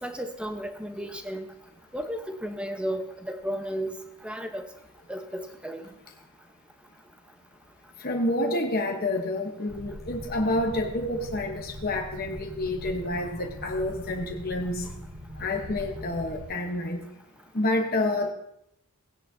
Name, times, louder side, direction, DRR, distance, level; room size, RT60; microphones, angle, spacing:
voice 1, 0.0-1.5 1.9-3.9 4.2-4.6 5.1-5.8, equal, 5° right, 5 dB, 0.9 m, -33 dB
voice 2, 8.0-14.9 15.4-17.0 17.5-18.3, left 1 dB, 45° left, 1 dB, 1.1 m, -28 dB
sound 1, 9.7-16.4, equal, 55° right, 2.8 m, -41 dB
18.0 x 10.0 x 2.7 m, 0.79 s
head